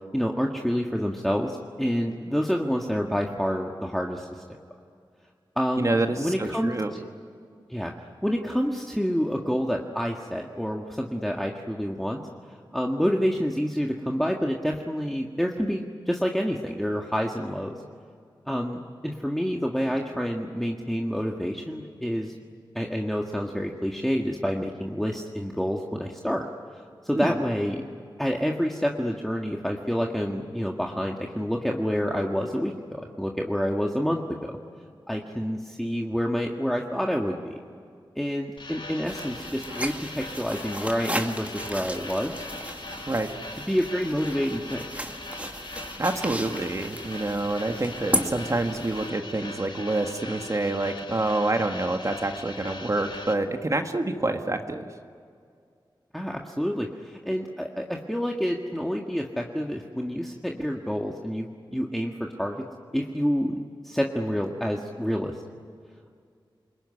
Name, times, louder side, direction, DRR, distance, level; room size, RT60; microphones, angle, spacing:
voice 1, 0.1-4.4 5.6-6.7 7.7-7.9 8.2-12.2 12.7-17.8 18.5-22.3 22.8-26.4 26.7-27.8 28.2-34.6 35.1-37.6 38.2-42.4 43.7-44.9 56.1-62.6 62.9-63.6 63.8-65.4, equal, 5° left, 0 dB, 1.8 m, -28 dB
voice 2, 5.8-6.9 27.2-27.4 43.1-43.3 46.0-54.9, right 2 dB, 40° right, 5 dB, 1.7 m, -27 dB
sound 1, 38.6-53.3, left 2 dB, 70° left, 2.1 m, -40 dB
sound 2, 39.0-49.1, right 1 dB, 15° right, 2.2 m, -35 dB
28.5 x 21.0 x 9.8 m, 2.3 s
wide cardioid pair, 70°, 8 cm